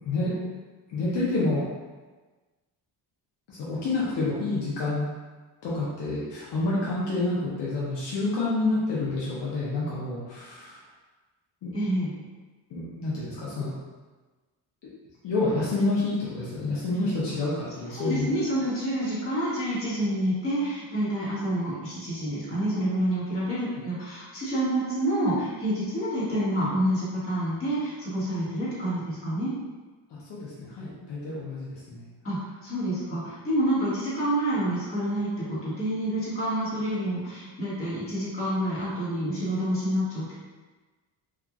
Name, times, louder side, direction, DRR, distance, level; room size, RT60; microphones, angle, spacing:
voice 1, 0.0-0.5 0.9-1.7 3.5-5.1 5.6-10.8 11.6-11.7 12.7-13.7 15.2-18.3 30.1-32.1, left 2 dB, 70° left, -7 dB, 0.8 m, -28 dB
voice 2, 11.7-12.1 17.9-29.5 32.2-40.3, right 1 dB, 30° left, -10 dB, 1.2 m, -28 dB
2.9 x 2.4 x 2.4 m, 1.3 s
cardioid pair, 135°, 43 cm